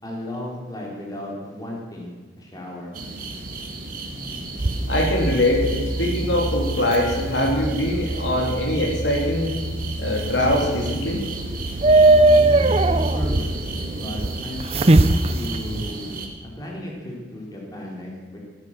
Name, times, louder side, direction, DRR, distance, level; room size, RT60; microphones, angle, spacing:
voice 1, 0.0-3.0 12.4-18.4, left 1 dB, 20° left, -2 dB, 3.7 m, -34 dB
sound 1, 2.9-16.3, right 3 dB, 50° right, 1.9 m, -35 dB
sound 2, 4.6-15.9, right 2 dB, 35° right, 0.6 m, -21 dB
voice 2, 4.9-9.5 10.0-11.2, left 1 dB, 85° left, 0 dB, 3.1 m, -22 dB
15.5 x 10.0 x 7.4 m, 1.4 s
head